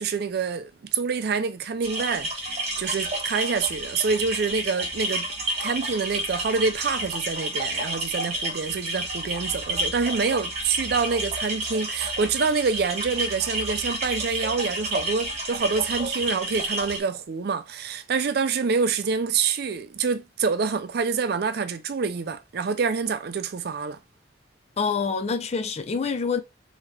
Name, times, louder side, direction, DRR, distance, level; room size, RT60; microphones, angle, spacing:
voice 1, 0.0-5.3 5.6-24.0, right 5 dB, 60° right, 0.4 m, -26 dB
sound 1, 1.8-17.0, right 1 dB, 35° right, 1.2 m, -30 dB
voice 2, 24.8-26.4, left 5 dB, 35° left, 0.4 m, -26 dB
3.6 x 2.8 x 3.1 m
head